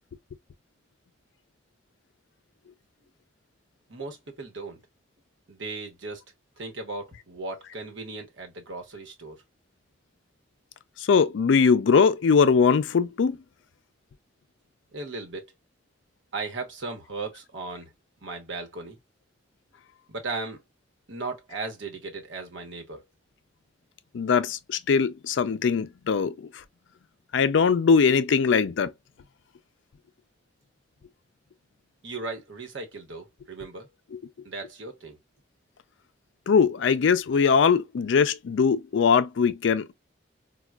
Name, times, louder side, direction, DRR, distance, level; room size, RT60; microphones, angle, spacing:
voice 1, 3.9-4.8 5.5-6.2 6.6-9.4 14.9-15.5 16.3-17.9 18.2-19.0 20.1-20.6 21.1-23.0 32.0-33.9 34.4-35.2, right 3 dB, 80° right, 1.0 m, -36 dB
voice 2, 11.1-13.4 24.1-26.3 27.3-28.9 36.5-39.9, left 5 dB, 75° left, 0.4 m, -21 dB
4.2 x 2.3 x 2.3 m
head